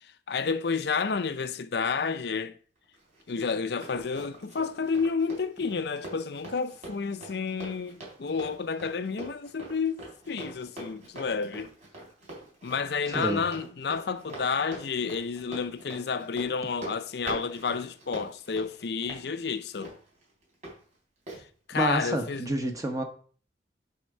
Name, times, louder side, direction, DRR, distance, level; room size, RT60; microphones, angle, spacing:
voice 1, 0.0-2.6 3.3-11.7 12.6-19.9 21.7-22.5, left 5 dB, 60° left, 0.5 m, -30 dB
Run, 2.9-20.7 21.3-21.4, right 1 dB, 40° right, 3.5 m, -44 dB
voice 2, 21.8-23.0, right 1 dB, 20° right, 0.9 m, -28 dB
8.5 x 3.6 x 6.5 m
head